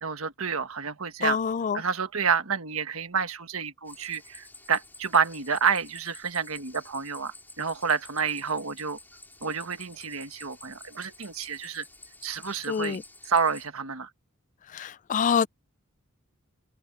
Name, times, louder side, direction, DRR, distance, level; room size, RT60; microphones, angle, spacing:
voice 1, 0.0-1.4 1.7-9.0 9.4-11.8 12.2-14.1, right 6 dB, 75° right, 1.4 m, -29 dB
voice 2, 1.2-1.8 12.7-13.0 14.7-15.5, left 7 dB, 35° left, 0.3 m, -26 dB
sound 1, 3.9-13.7, left 2 dB, 10° left, 4.1 m, -50 dB
head